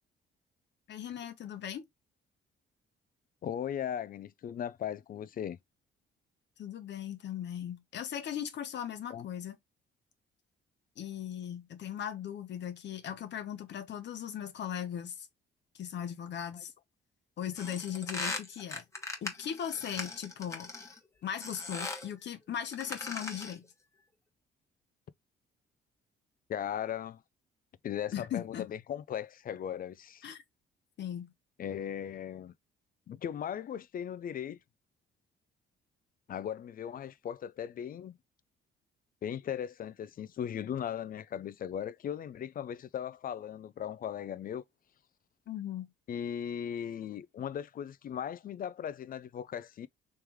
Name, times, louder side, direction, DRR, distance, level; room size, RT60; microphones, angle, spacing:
voice 1, 0.9-1.8 6.6-9.6 11.0-15.3 15.7-16.7 17.4-18.8 19.2-20.7 21.2-23.7 28.1-28.7 30.2-30.4 31.0-31.3 45.5-45.9, left 9 dB, 60° left, 0.9 m, -38 dB
voice 2, 3.4-5.6 9.1-9.3 16.5-16.6 26.5-27.2 27.8-30.2 31.6-32.5 33.1-34.6 36.3-38.2 39.2-44.6 46.1-49.9, left 9 dB, 45° left, 0.4 m, -38 dB
sound 1, 17.5-21.0 21.4-22.1 22.7-23.7, left 3 dB, 15° left, 1.2 m, -39 dB
3.3 x 3.0 x 3.5 m
cardioid pair, 90°, 20 cm